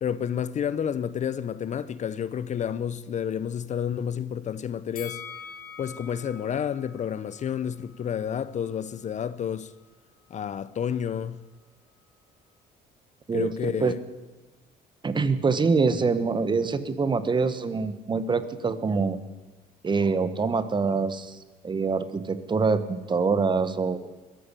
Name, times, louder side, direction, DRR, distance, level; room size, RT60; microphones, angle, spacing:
voice 1, 0.0-5.2 5.8-9.7 10.3-11.4 13.3-14.0, left 8 dB, 45° left, 0.8 m, -30 dB
Bell, 5.0-8.1 8.5-8.6, left 7 dB, 60° left, 3.5 m, -44 dB
voice 2, 13.3-13.9 15.0-19.2 19.8-21.4 21.6-24.1, right 4 dB, 25° right, 1.6 m, -25 dB
21.5 x 14.0 x 8.4 m
cardioid pair, 110°, 17 cm